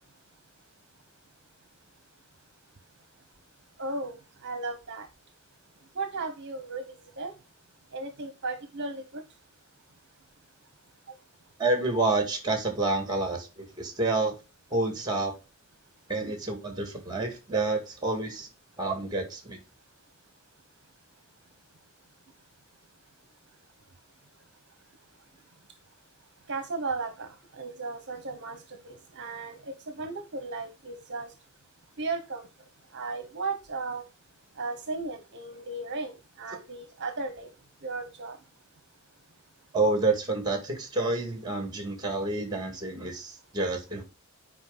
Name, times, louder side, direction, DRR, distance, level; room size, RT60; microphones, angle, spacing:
voice 1, 3.8-4.1 4.4-5.1 5.9-7.3 7.9-9.2 26.5-31.3 32.0-32.5 32.9-34.0 34.6-37.5 37.8-38.4, right 3 dB, 55° right, 1.0 m, -35 dB
voice 2, 11.6-14.3 14.7-15.3 16.1-18.5 18.8-19.6 39.7-44.0, right 2 dB, 20° right, 2.0 m, -28 dB
8.9 x 5.0 x 3.9 m
head